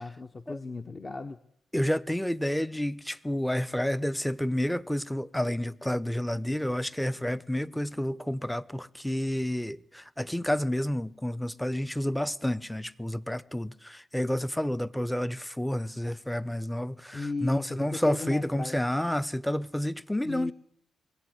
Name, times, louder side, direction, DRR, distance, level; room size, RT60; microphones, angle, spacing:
voice 1, 0.0-1.4 17.1-18.8 20.2-20.5, left 3 dB, 40° left, 0.8 m, -36 dB
voice 2, 1.7-20.5, left 1 dB, 5° left, 0.5 m, -30 dB
21.5 x 8.3 x 7.9 m
supercardioid pair, 45°, 0 cm